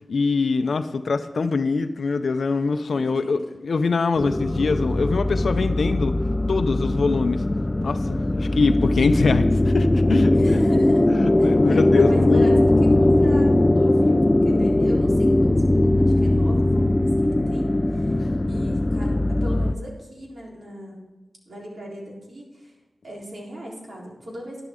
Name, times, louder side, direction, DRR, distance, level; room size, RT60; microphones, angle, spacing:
voice 1, 0.1-6.2 6.5-7.4 7.8-10.6 11.1-12.5 18.2-18.3, left 4 dB, 80° left, 9 dB, 0.5 m, -23 dB
voice 2, 2.9-3.4 8.1-8.5 10.3-11.1 11.4-21.0 21.5-22.8 23.0-24.6, equal, 65° right, -3 dB, 3.7 m, -38 dB
sound 1, 4.2-19.7, left 1 dB, 20° left, 0.5 m, -20 dB
11.5 x 11.0 x 3.7 m, 1.1 s
wide cardioid pair, 65°, 0 cm